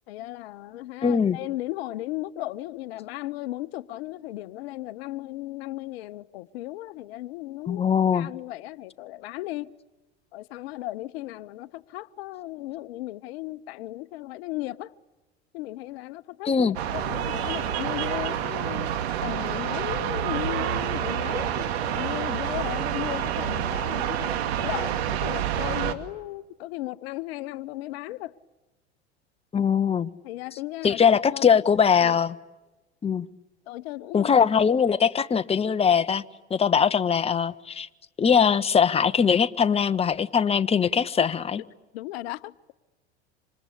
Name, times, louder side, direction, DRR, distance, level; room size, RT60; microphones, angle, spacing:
voice 1, 0.1-7.8 8.1-9.7 10.3-14.9 15.5-18.9 19.2-28.3 30.2-31.0 31.3-31.5 32.0-32.1 33.7-34.3 41.9-42.5, left 17 dB, 65° left, 0.8 m, -36 dB
voice 2, 1.0-1.4 7.7-8.3 16.4-16.8 29.5-30.1 30.8-32.4 33.0-33.3 34.1-36.2 36.5-37.9 38.2-41.6, left 7 dB, 20° left, 1.0 m, -21 dB
sound 1, 16.7-25.9, right 10 dB, 70° right, 2.4 m, -28 dB
27.0 x 26.5 x 8.4 m
hypercardioid pair, 80°, 33 cm